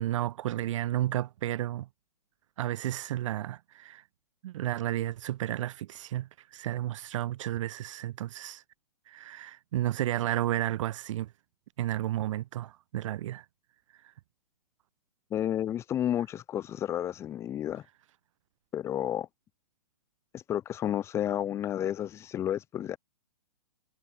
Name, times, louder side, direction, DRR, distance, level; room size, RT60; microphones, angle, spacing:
voice 1, 0.0-1.9 2.6-4.0 4.4-8.6 9.1-11.3 11.8-13.5, right 13 dB, 50° right, 2.5 m, -32 dB
voice 2, 15.3-17.8 18.7-19.3 20.3-23.0, left 10 dB, 15° left, 0.5 m, -31 dB
figure-of-eight pair, 120°, 20 cm